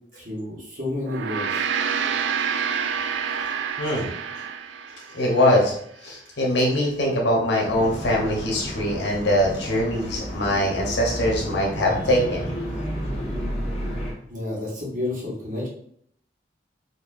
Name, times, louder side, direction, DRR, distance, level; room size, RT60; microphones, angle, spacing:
voice 1, 0.1-1.6 14.3-15.7, left 2 dB, 45° right, -3 dB, 1.2 m, -30 dB
Gong, 1.0-5.6, right 7 dB, 85° right, 0.3 m, -28 dB
voice 2, 5.1-5.7 6.0-12.5, left 1 dB, 85° left, -1 dB, 1.0 m, -22 dB
sound 1, 7.6-14.1, equal, 35° left, 1.0 m, -31 dB
4.3 x 2.7 x 2.6 m, 0.67 s
head